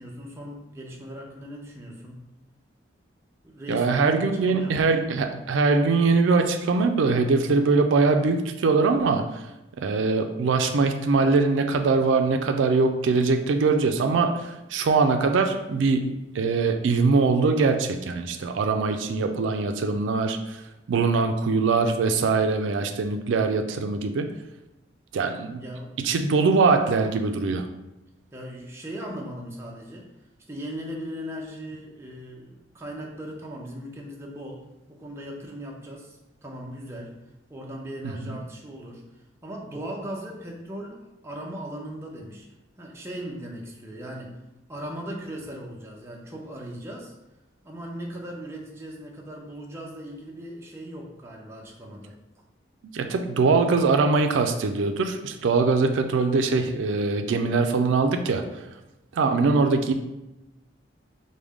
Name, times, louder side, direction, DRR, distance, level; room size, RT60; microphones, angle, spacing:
voice 1, 0.0-2.3 3.4-5.0 25.6-26.1 28.3-30.1 30.5-37.2 37.5-42.5 42.8-44.4 44.7-47.1 47.6-52.2, equal, 15° right, -1 dB, 0.5 m, -38 dB
voice 2, 3.7-9.5 9.8-20.6 20.9-24.3 25.1-25.6 26.0-27.7 38.0-38.4 52.8-58.7 59.1-59.9, right 4 dB, 85° right, 6 dB, 0.4 m, -22 dB
4.7 x 2.1 x 3.5 m, 0.94 s
head